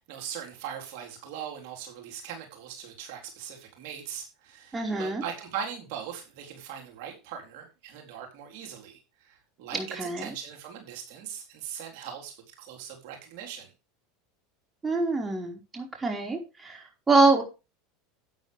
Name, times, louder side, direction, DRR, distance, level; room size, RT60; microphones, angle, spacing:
voice 1, 0.1-13.7, right 8 dB, 65° right, 2 dB, 4.1 m, -40 dB
voice 2, 4.7-5.2 9.7-10.3 14.8-17.4, right 3 dB, 15° right, 2 dB, 4.9 m, -25 dB
12.5 x 9.2 x 3.5 m, 0.29 s
hypercardioid pair, 95°, 0 cm